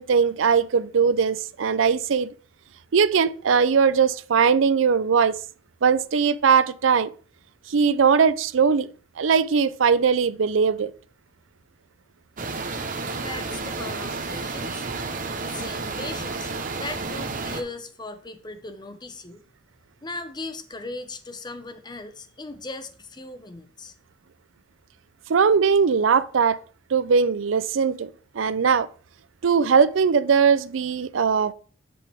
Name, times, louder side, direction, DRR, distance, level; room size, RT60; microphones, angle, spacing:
voice 1, 0.0-2.3 2.9-5.4 5.8-7.1 7.7-8.9 9.2-10.9 25.3-26.6 26.9-28.1 28.3-28.9 29.4-31.5, right 6 dB, 90° right, 0.5 m, -20 dB
sound 1, 12.4-17.6, right 3 dB, 45° right, 0.9 m, -31 dB
voice 2, 13.1-14.9 15.4-16.5 16.8-19.4 20.0-23.9, left 2 dB, 20° left, 0.7 m, -38 dB
10.0 x 5.2 x 3.5 m
head